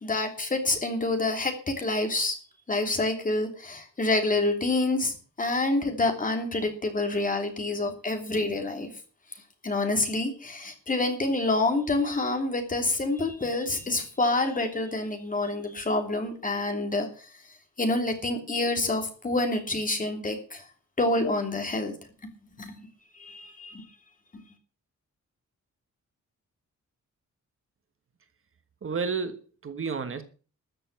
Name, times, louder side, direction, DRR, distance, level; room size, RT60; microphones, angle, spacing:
voice 1, 0.0-2.4 2.7-8.9 9.6-17.3 17.8-20.7 21.0-21.9 22.6-22.7 23.1-23.8 24.3-24.4, left 2 dB, 25° left, 4 dB, 3.1 m, -27 dB
voice 2, 28.8-30.2, right 5 dB, 45° right, 9 dB, 1.4 m, -31 dB
13.5 x 6.9 x 8.4 m, 0.38 s
wide cardioid pair, 165°, 30 cm